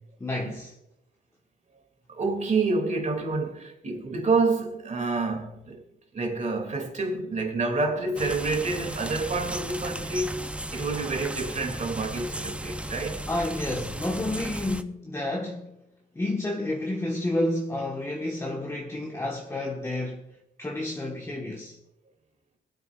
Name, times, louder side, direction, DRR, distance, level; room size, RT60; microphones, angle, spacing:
voice 1, 0.2-0.7 13.3-15.7 16.1-21.8, left 1 dB, 15° left, 1.3 m, -30 dB
voice 2, 2.1-5.8 6.1-13.3, right 3 dB, 35° right, 2.5 m, -28 dB
sound 1, 8.2-14.8, right 1 dB, 5° right, 0.6 m, -35 dB
20.5 x 9.5 x 2.4 m
cardioid pair, 90°, 20 cm